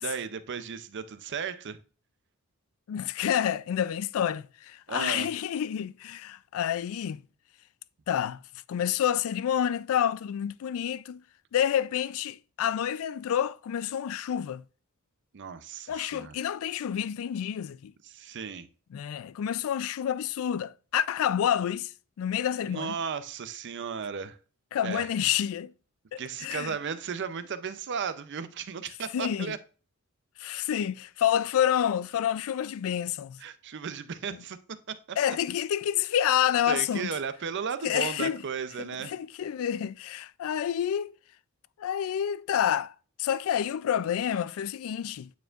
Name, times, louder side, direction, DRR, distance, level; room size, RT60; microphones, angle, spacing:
voice 1, 0.0-1.8 4.9-5.3 15.3-16.3 18.0-18.7 22.7-24.4 24.8-25.1 26.2-29.6 33.4-34.6 34.9-35.2 36.7-39.1, right 6 dB, 55° right, 0.5 m, -35 dB
voice 2, 2.9-7.2 8.1-8.4 8.7-11.2 11.5-14.6 15.9-17.9 18.9-23.0 24.7-25.7 26.1-26.8 29.1-29.5 30.4-33.4 35.2-37.1 37.8-38.4 38.8-41.2 41.8-45.3, left 9 dB, 65° left, 0.3 m, -28 dB
9.2 x 4.4 x 2.4 m
head